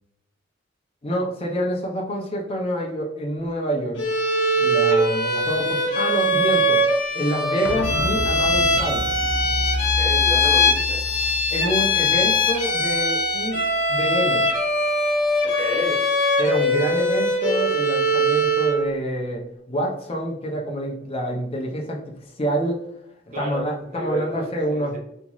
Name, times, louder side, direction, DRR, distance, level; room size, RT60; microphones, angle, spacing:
voice 1, 1.0-4.0 4.6-6.9 7.1-9.0 11.5-13.6 13.9-14.5 16.4-22.0 22.4-22.9 23.3-25.0, equal, 30° left, 0 dB, 0.5 m, -27 dB
Bowed string instrument, 4.0-18.8, left 1 dB, 65° left, 1.0 m, -21 dB
sound 1, 7.6-13.3 13.6-13.7, left 2 dB, 90° left, 0.4 m, -30 dB
voice 2, 9.8-11.0 15.4-16.0 23.3-23.7 23.9-25.0, right 1 dB, 40° right, -1 dB, 0.7 m, -31 dB
2.9 x 2.6 x 2.3 m, 0.83 s
head